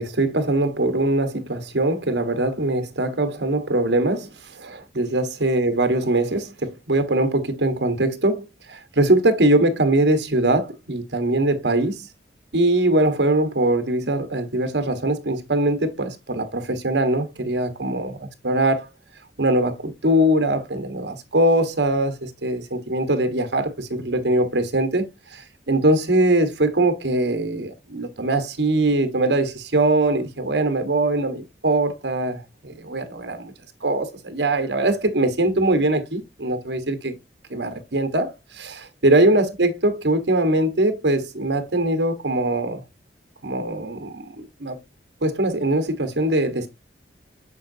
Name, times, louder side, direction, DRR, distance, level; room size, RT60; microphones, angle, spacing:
voice 1, 0.0-12.1 12.5-18.9 19.4-33.5 33.8-37.1 37.5-42.8 43.4-44.3 44.6-44.8 45.2-46.7, right 1 dB, 85° right, 1.4 m, -22 dB
7.1 x 5.8 x 2.7 m
head